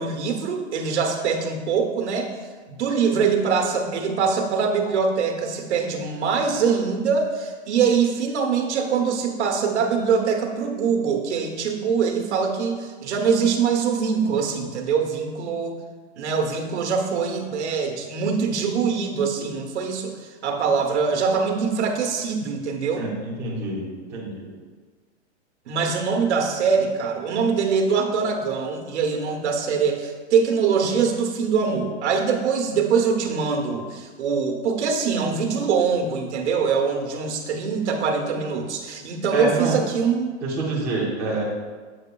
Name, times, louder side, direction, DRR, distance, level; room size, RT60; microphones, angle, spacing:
voice 1, 0.0-2.3 2.7-15.8 16.2-23.1 25.7-40.4, right 5 dB, 80° right, 3 dB, 1.1 m, -23 dB
voice 2, 22.8-23.8 24.1-24.5 39.3-39.8 40.4-41.4, right 2 dB, 10° right, -5 dB, 0.5 m, -27 dB
7.9 x 6.6 x 2.3 m, 1.4 s
supercardioid pair, 175°, 34 cm